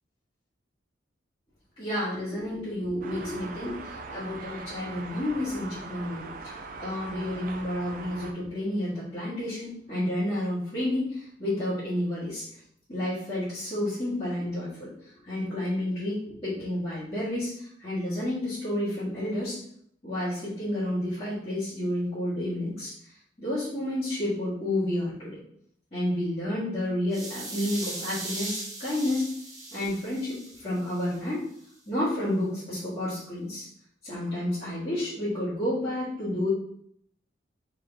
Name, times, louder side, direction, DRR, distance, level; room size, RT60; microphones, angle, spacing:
voice 1, 1.8-12.4 12.9-14.9 15.2-19.6 20.0-22.9 23.4-25.4 25.9-29.3 29.7-31.4 31.8-33.6 34.0-36.5, left 1 dB, 30° left, -13 dB, 1.7 m, -30 dB
sound 1, 3.0-8.3, right 3 dB, 45° right, 0.4 m, -41 dB
sound 2, 27.1-31.2, right 2 dB, 20° right, 0.8 m, -39 dB
3.8 x 3.4 x 3.4 m, 0.67 s
head